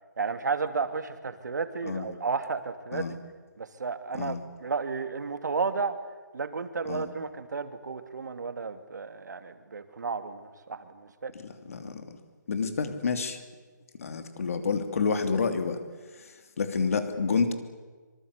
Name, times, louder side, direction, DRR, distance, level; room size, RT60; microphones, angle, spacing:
voice 1, 0.2-3.0 3.6-5.9 6.3-11.3, right 5 dB, 65° right, 9 dB, 2.6 m, -32 dB
voice 2, 11.4-12.0 12.5-13.4 14.0-15.8 16.6-17.5, left 5 dB, 45° left, 8 dB, 2.9 m, -29 dB
25.0 x 24.5 x 8.3 m, 1.4 s
hypercardioid pair, 170°, 10 cm